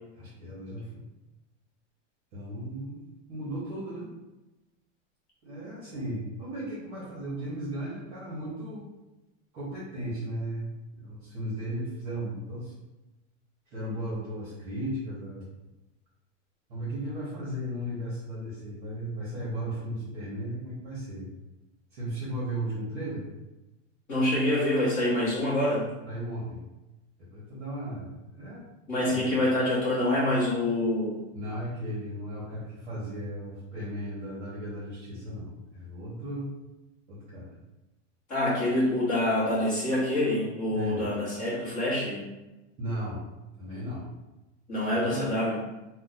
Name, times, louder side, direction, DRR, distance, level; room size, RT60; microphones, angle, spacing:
voice 1, 0.2-1.0 2.3-3.0 3.3-4.1 5.4-8.8 9.5-10.7 11.0-12.7 13.7-15.5 16.7-21.3 21.9-23.2 26.1-26.6 27.2-28.7 29.0-29.4 31.3-36.5 37.1-37.5 40.7-41.0 42.8-43.2 43.6-44.0 44.9-45.3, right 1 dB, 30° right, -8 dB, 1.0 m, -36 dB
voice 2, 24.1-25.9 28.9-31.2 38.3-42.2 44.7-45.6, left 1 dB, 20° left, -7 dB, 1.0 m, -26 dB
2.5 x 2.2 x 3.9 m, 1.0 s
supercardioid pair, 175°, 38 cm